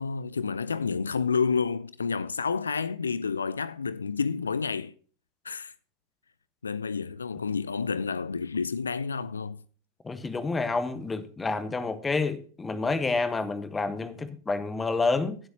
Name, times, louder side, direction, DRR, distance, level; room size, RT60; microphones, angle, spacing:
voice 1, 0.0-4.9 5.4-5.7 6.6-9.6, left 5 dB, 75° left, 0.4 m, -29 dB
voice 2, 10.0-15.4, left 3 dB, 15° left, 1.2 m, -29 dB
18.5 x 7.9 x 2.8 m
figure-of-eight pair, 90°, 0 cm